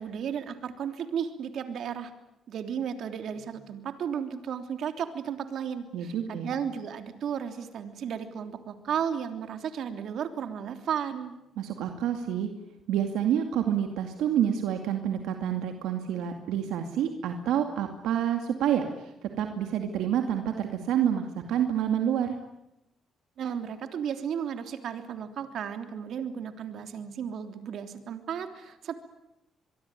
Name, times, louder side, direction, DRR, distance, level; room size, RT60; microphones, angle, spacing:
voice 1, 0.0-2.1 2.5-11.3 23.4-28.9, right 8 dB, 70° right, 7 dB, 3.3 m, -34 dB
voice 2, 5.9-6.5 11.6-12.5 12.9-22.4, right 9 dB, 90° right, 5 dB, 2.3 m, -28 dB
24.5 x 23.5 x 9.3 m, 0.91 s
cardioid pair, 90°, 0 cm